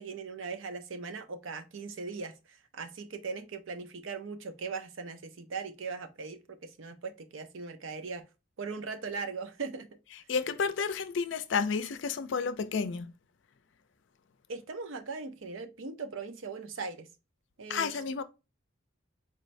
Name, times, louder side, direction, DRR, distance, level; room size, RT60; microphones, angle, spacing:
voice 1, 0.0-8.3 8.6-9.9 14.5-17.1 17.6-17.9, right 4 dB, 75° right, 0.6 m, -39 dB
voice 2, 10.3-13.1 17.7-18.2, left 5 dB, 65° left, 0.4 m, -31 dB
4.3 x 2.6 x 3.1 m
head